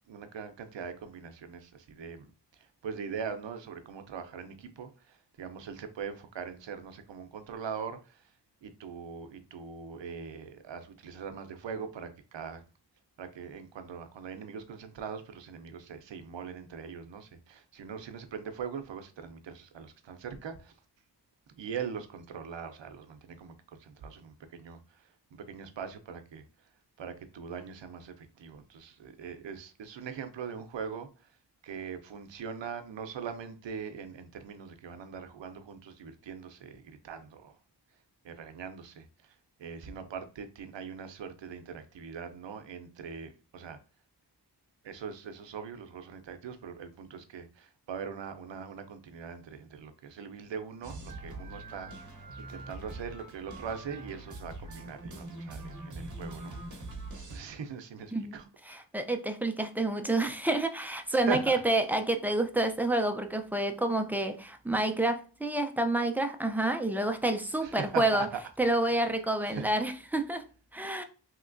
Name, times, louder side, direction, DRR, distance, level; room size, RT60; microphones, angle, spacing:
voice 1, 0.1-8.3 8.6-12.6 13.2-20.7 21.5-26.4 27.0-31.4 31.6-37.5 38.2-43.8 44.8-56.6 57.3-58.8 61.1-61.6 67.6-68.4 68.9-69.0 69.4-69.7, right 6 dB, 90° right, 0.6 m, -41 dB
sound 1, 50.8-57.4, right 2 dB, 45° right, 0.8 m, -43 dB
voice 2, 58.7-68.3 68.6-70.4 70.7-71.0, right 2 dB, 5° right, 0.4 m, -28 dB
3.2 x 2.9 x 2.5 m
wide cardioid pair, 80°, 43 cm